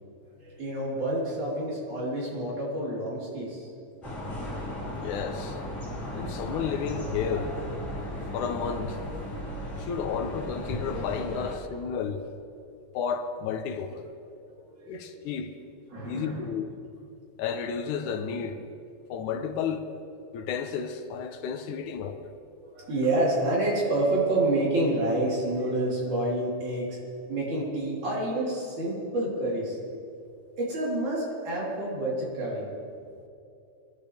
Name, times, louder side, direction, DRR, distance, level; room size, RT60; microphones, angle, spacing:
voice 1, 0.4-3.7 9.7-9.9 14.6-15.2 15.9-16.5 22.6-27.0 27.3-29.8 30.6-32.7, right 1 dB, 75° right, 5.4 m, -28 dB
sound 1, 4.0-11.5, equal, 10° left, 3.8 m, -35 dB
voice 2, 4.9-5.6 6.1-7.5 7.9-8.0 8.3-9.0 9.8-12.3 12.9-14.1 14.9-15.5 16.0-16.7 17.4-18.6 19.1-19.9 20.3-22.2, left 6 dB, 80° left, 2.3 m, -32 dB
22.5 x 12.0 x 3.5 m
omnidirectional pair, 3.5 m